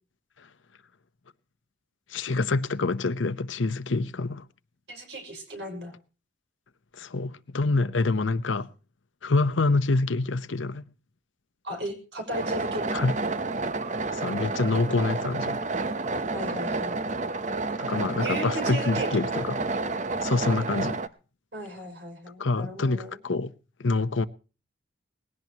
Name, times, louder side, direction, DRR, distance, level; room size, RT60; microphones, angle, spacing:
voice 1, 2.1-4.5 6.9-8.7 9.2-10.8 12.9-13.1 14.1-15.6 17.8-19.6 20.2-21.0 22.4-23.5 23.8-24.3, left 3 dB, 85° left, 0.8 m, -26 dB
voice 2, 4.9-5.9 11.6-13.0 16.3-17.0 18.2-19.5 21.5-23.2, equal, 65° right, 5.8 m, -36 dB
sound 1, 12.3-21.1, right 3 dB, 40° right, 0.8 m, -30 dB
19.5 x 17.0 x 2.9 m
head